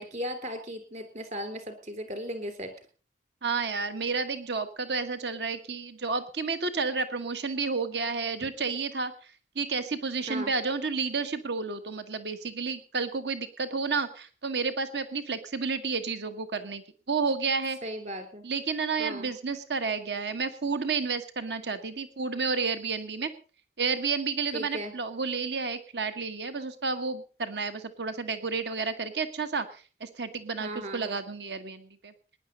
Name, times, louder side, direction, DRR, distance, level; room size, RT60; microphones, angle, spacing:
voice 1, 0.0-2.7 10.3-10.5 17.8-18.4 19.0-19.3 24.5-24.9 30.6-31.2, equal, 45° right, 8 dB, 3.6 m, -36 dB
voice 2, 3.4-16.8 17.1-17.8 18.4-23.3 23.8-32.1, right 4 dB, 75° right, 10 dB, 1.3 m, -31 dB
19.0 x 10.5 x 5.3 m, 0.38 s
head